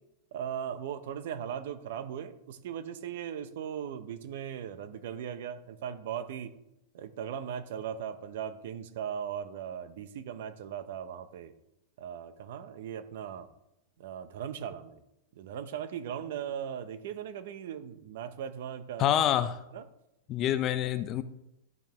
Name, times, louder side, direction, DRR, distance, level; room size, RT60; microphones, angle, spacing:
voice 1, 0.3-6.5 6.9-11.5 12.0-13.5 14.0-15.0 15.4-19.2 19.7-19.8, right 8 dB, 65° right, 12 dB, 0.8 m, -38 dB
voice 2, 19.0-19.6 20.3-21.2, left 11 dB, 30° left, 12 dB, 0.5 m, -27 dB
13.5 x 5.3 x 3.0 m, 0.86 s
supercardioid pair, 155°, 0 cm